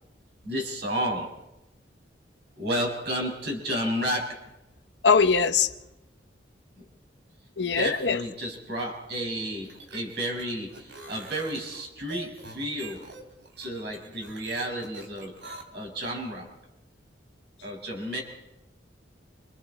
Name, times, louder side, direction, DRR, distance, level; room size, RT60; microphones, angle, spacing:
voice 1, 0.4-1.3 2.6-4.4 6.7-6.8 7.7-13.1 13.6-16.5 17.6-18.2, equal, 65° right, 6.1 m, -32 dB
voice 2, 5.0-5.7 7.6-8.2, left 5 dB, 70° left, 1.0 m, -21 dB
sound 1, 9.5-15.6, right 3 dB, 85° right, 3.5 m, -45 dB
28.0 x 27.0 x 4.3 m
head